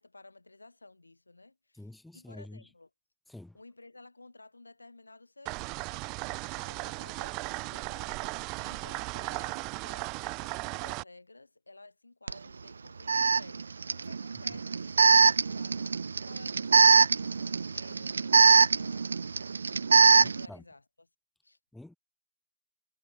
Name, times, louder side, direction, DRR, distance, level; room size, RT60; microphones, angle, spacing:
voice 1, 0.0-1.9 2.1-2.9 3.5-6.0 6.5-19.0 20.0-21.1 21.4-21.6, left 2 dB, 80° left, 4.4 m, -54 dB
voice 2, 1.7-2.7 3.3-3.6 20.2-20.6 21.7-22.0, left 1 dB, ahead, 3.3 m, -47 dB
sound 1, 5.5-11.0, right 28 dB, 25° right, 1.3 m, -36 dB
Alarm, 12.3-12.4 13.1-20.5, right 5 dB, 65° right, 0.4 m, -23 dB
figure-of-eight pair, 125°, 0 cm